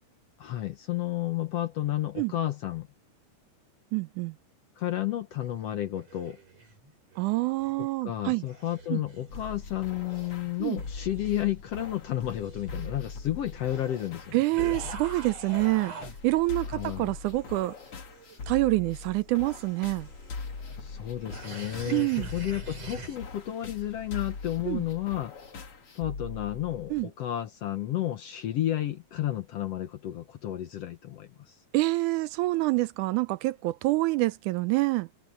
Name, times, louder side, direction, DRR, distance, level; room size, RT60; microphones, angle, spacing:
voice 1, 0.4-2.9 4.8-6.4 7.8-14.4 16.7-17.1 20.8-25.3 25.9-31.5, left 13 dB, 65° left, 1.7 m, -32 dB
voice 2, 3.9-4.3 7.2-8.4 8.9-9.0 10.6-10.8 14.3-15.9 16.2-17.7 18.5-20.1 21.9-22.3 24.7-24.8 26.9-27.1 31.7-35.1, right 20 dB, 80° right, 2.0 m, -26 dB
sound 1, 5.4-7.8 8.1-16.2 16.5-23.2, right 3 dB, 50° right, 8.4 m, -46 dB
sound 2, 9.3-27.0, left 4 dB, 45° left, 3.4 m, -41 dB
omnidirectional pair, 3.7 m